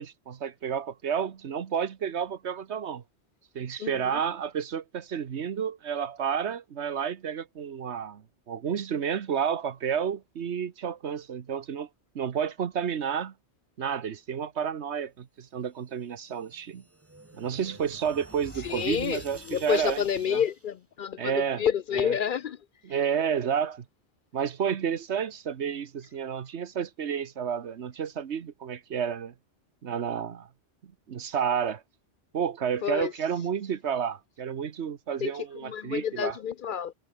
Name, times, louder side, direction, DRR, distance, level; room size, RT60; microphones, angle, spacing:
voice 1, 0.0-3.0 3.5-11.9 12.1-13.3 13.8-16.8 17.3-20.0 20.3-20.4 21.2-21.6 21.9-22.1 22.8-23.8 24.3-29.3 29.8-30.5 30.8-31.8 32.3-36.4, right 7 dB, 80° right, 1.3 m, -31 dB
Time travel, 16.2-20.7, right 2 dB, 15° right, 1.0 m, -49 dB
voice 2, 18.6-22.6 32.8-33.1 35.2-35.3 35.6-36.9, left 8 dB, 60° left, 0.6 m, -29 dB
omnidirectional pair, 1.1 m